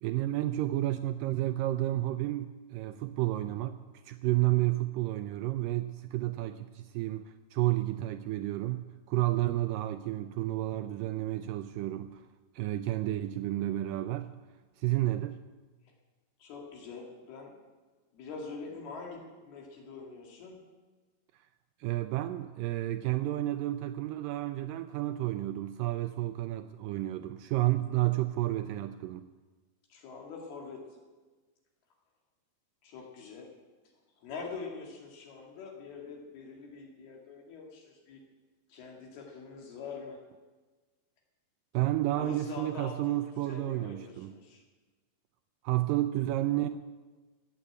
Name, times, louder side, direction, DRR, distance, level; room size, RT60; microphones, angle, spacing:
voice 1, 0.0-3.8 4.1-12.3 12.6-14.3 14.8-15.4 21.8-29.3 41.7-44.3 45.6-46.7, right 16 dB, 85° right, 9 dB, 1.9 m, -31 dB
voice 2, 16.4-17.6 18.1-20.6 27.9-28.0 29.9-30.8 32.8-33.5 34.2-38.2 38.7-40.2 42.2-44.6, left 4 dB, 80° left, 0 dB, 4.2 m, -44 dB
15.0 x 9.5 x 7.9 m, 1.3 s
omnidirectional pair, 4.5 m